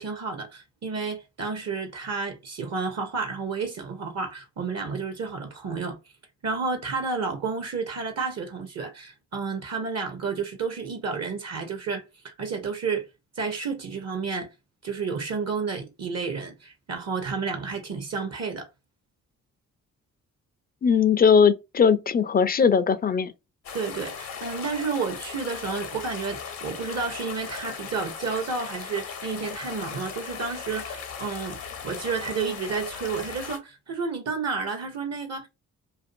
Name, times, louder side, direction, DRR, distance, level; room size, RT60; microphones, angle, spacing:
voice 1, 0.0-6.0 6.4-13.0 13.4-14.5 14.8-18.7 23.7-31.6 31.8-35.5, right 5 dB, 45° right, 0.7 m, -31 dB
voice 2, 20.8-23.3, left 6 dB, 25° left, 0.4 m, -19 dB
sound 1, 23.6-33.6, left 6 dB, 75° left, 0.8 m, -38 dB
2.5 x 2.3 x 2.6 m
supercardioid pair, 45°, 35 cm